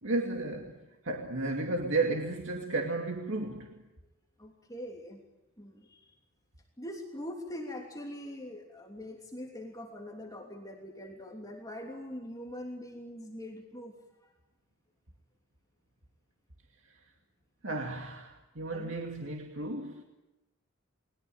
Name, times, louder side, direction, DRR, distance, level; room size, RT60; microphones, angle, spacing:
voice 1, 0.0-3.8 16.8-17.0 17.6-20.0, right 2 dB, 65° right, 2.4 m, -33 dB
voice 2, 4.4-5.2 5.6-6.1 6.8-13.9 14.2-14.3 18.7-19.0, left 1 dB, 15° left, 3.1 m, -43 dB
30.0 x 22.0 x 9.2 m
head